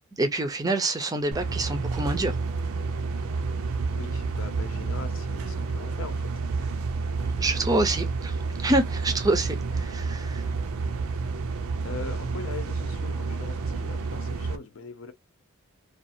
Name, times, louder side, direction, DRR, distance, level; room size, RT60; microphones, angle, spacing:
voice 1, 0.2-2.4 7.4-10.4, right 2 dB, 15° right, 0.5 m, -26 dB
sound 1, 1.3-14.6, right 4 dB, 85° right, 0.5 m, -30 dB
voice 2, 3.9-6.3 6.6-6.7 11.8-15.1, left 4 dB, 70° left, 0.6 m, -41 dB
2.5 x 2.3 x 2.6 m
head